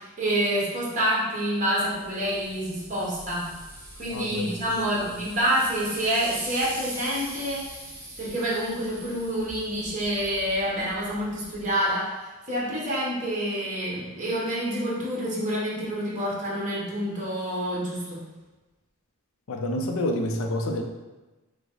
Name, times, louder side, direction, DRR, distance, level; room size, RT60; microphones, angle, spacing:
voice 1, 0.0-3.4 4.0-7.6 8.2-12.1 12.5-18.2, equal, 35° right, -6 dB, 1.3 m, -27 dB
sound 1, 1.6-11.9, right 1 dB, 15° right, 1.0 m, -43 dB
voice 2, 4.1-4.5 4.9-5.1 19.5-20.8, left 1 dB, 65° left, 4 dB, 0.5 m, -28 dB
5.7 x 2.1 x 3.9 m, 1.1 s
head